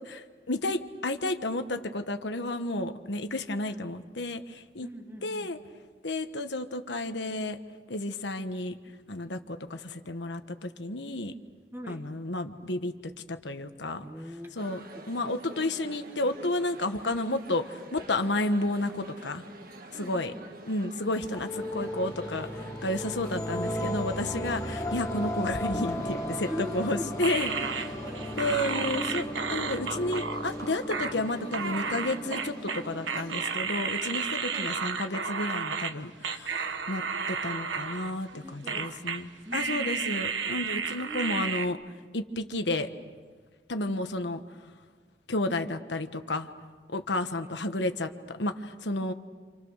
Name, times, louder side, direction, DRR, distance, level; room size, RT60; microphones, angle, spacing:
voice 1, 0.0-4.9 5.2-5.6 6.0-7.6 7.9-8.8 9.1-11.3 11.9-12.9 13.3-14.0 14.6-19.5 20.0-20.3 20.7-27.9 28.4-41.8 42.1-42.9 43.7-44.4 45.3-46.5 46.9-49.1, left 2 dB, 70° left, 7 dB, 1.3 m, -32 dB
voice 2, 4.8-5.5 11.7-12.1 14.0-14.5 14.9-15.0 19.9-20.5 26.5-27.1 28.0-28.4 34.5-34.8 38.3-40.3 40.9-41.5, equal, 10° right, 4 dB, 1.7 m, -42 dB
sound 1, 14.6-33.6, right 1 dB, 50° right, 1.7 m, -48 dB
sound 2, 21.2-34.1, equal, 15° left, 1.6 m, -36 dB
sound 3, 27.2-35.9 36.2-38.4 38.7-39.2 39.5-41.7, right 5 dB, 90° right, 1.2 m, -32 dB
29.0 x 27.5 x 6.5 m, 1.5 s
head